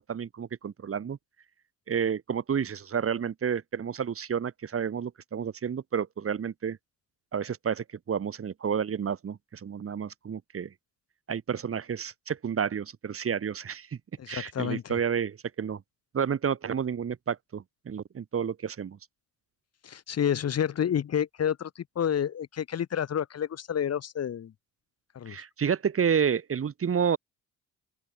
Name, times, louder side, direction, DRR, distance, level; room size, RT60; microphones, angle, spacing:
voice 1, 0.1-1.2 1.9-6.8 7.3-10.7 11.3-13.9 14.3-15.8 16.1-19.0 25.3-27.2, right 7 dB, 45° right, 1.8 m, -30 dB
voice 2, 14.2-14.9 19.8-21.7 21.9-24.5 25.1-25.4, left 9 dB, 50° left, 1.2 m, -29 dB
open air
cardioid pair, 95°, 33 cm